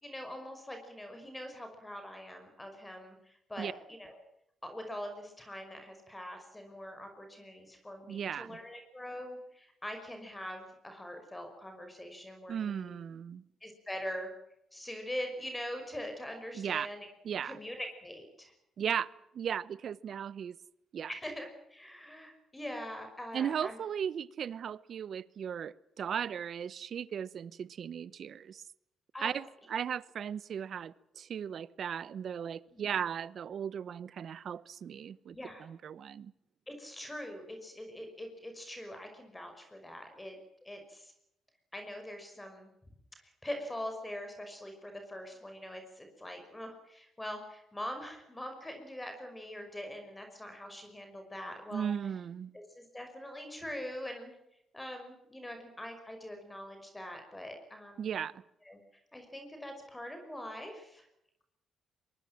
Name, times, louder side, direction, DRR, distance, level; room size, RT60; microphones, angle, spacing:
voice 1, 0.0-4.2 4.6-13.0 13.6-14.3 14.7-17.1 17.4-18.5 21.1-23.8 29.1-29.3 32.7-32.9 35.3-35.7 36.7-41.1 41.7-42.7 43.2-51.9 52.5-54.3 54.7-58.2 58.6-58.8 59.1-61.1, left 1 dB, 15° left, 5.6 m, -43 dB
voice 2, 8.1-8.6 12.5-13.4 16.5-16.9 17.2-17.6 18.8-20.5 20.9-21.1 23.3-28.6 29.2-36.3 51.7-52.5 58.0-58.4, right 8 dB, 60° right, 0.9 m, -37 dB
23.5 x 22.5 x 7.7 m
cardioid pair, 90°, 0 cm